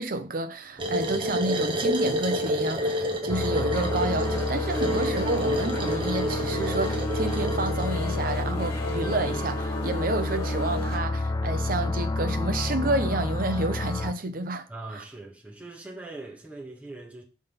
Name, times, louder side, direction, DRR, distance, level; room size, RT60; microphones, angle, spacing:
voice 1, 0.0-14.7 14.9-15.0, right 2 dB, 50° right, 0.7 m, -30 dB
sound 1, 0.8-7.9, equal, 30° right, 1.2 m, -29 dB
sound 2, 3.3-14.1, left 2 dB, 20° left, 0.3 m, -30 dB
sound 3, 3.7-11.0, equal, 55° left, 1.7 m, -34 dB
voice 2, 14.7-17.2, right 2 dB, 10° right, 1.6 m, -41 dB
5.5 x 3.8 x 5.5 m
head